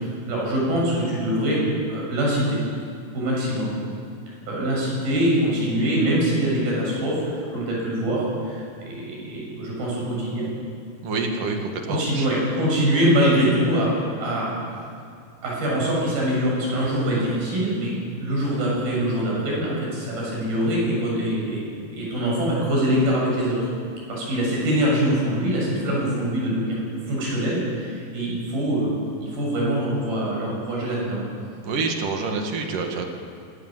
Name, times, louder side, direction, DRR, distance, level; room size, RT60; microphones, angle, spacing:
voice 1, 0.3-1.6 1.9-2.6 3.1-3.8 4.5-10.5 11.9-14.5 15.4-23.7 24.1-26.8 27.1-28.9 29.2-31.2, equal, 85° right, -4 dB, 9.1 m, -23 dB
voice 2, 11.0-12.3 31.6-33.1, right 4 dB, 65° right, 3 dB, 3.6 m, -27 dB
26.5 x 17.5 x 7.6 m, 2.4 s
omnidirectional pair, 4.2 m